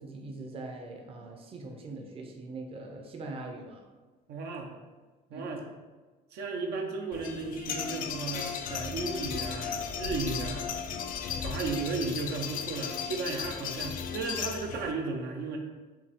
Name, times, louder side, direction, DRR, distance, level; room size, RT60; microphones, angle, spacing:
voice 1, 0.0-3.8 5.3-5.5 10.4-10.5, right 2 dB, 35° right, 2 dB, 0.6 m, -42 dB
voice 2, 4.3-4.7 5.3-5.6 6.3-10.7 11.3-15.6, right 4 dB, 75° right, 2 dB, 0.7 m, -35 dB
sound 1, 7.1-14.9, left 7 dB, 55° left, 0.4 m, -35 dB
4.7 x 2.7 x 3.5 m, 1.3 s
cardioid pair, 110°, 17 cm